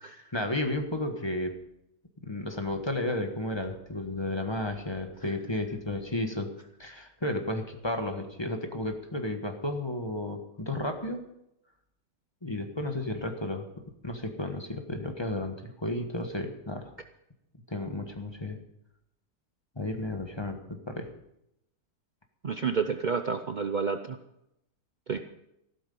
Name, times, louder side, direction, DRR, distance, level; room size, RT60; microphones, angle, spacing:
voice 1, 0.3-1.5 2.2-6.5 6.8-11.2 12.4-13.6 14.0-16.9 17.7-18.6 19.7-21.1, left 1 dB, 15° left, 4 dB, 1.3 m, -33 dB
voice 2, 22.4-24.2 25.1-25.2, right 5 dB, 70° right, 7 dB, 0.4 m, -30 dB
14.5 x 13.0 x 5.5 m, 0.81 s
omnidirectional pair, 1.8 m